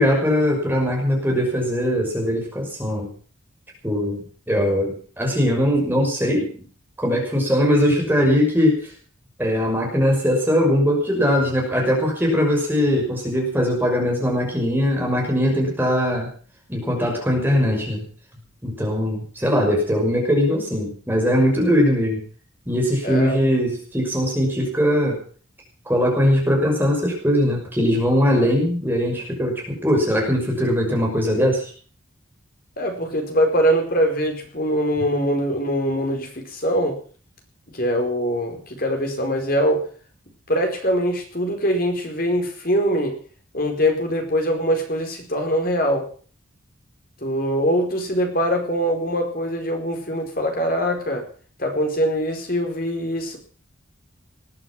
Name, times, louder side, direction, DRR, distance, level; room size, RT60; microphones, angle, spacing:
voice 1, 0.0-3.1 3.8-6.5 7.0-8.8 9.4-16.3 16.7-18.0 18.6-22.2 22.7-25.2 25.9-31.7, equal, 10° right, 0 dB, 6.1 m, -20 dB
voice 2, 23.0-23.4 32.8-37.0 37.7-39.8 40.5-43.2 43.5-46.1 47.2-51.3 51.6-53.4, equal, 45° left, 4 dB, 4.7 m, -22 dB
20.0 x 12.0 x 6.1 m, 0.43 s
head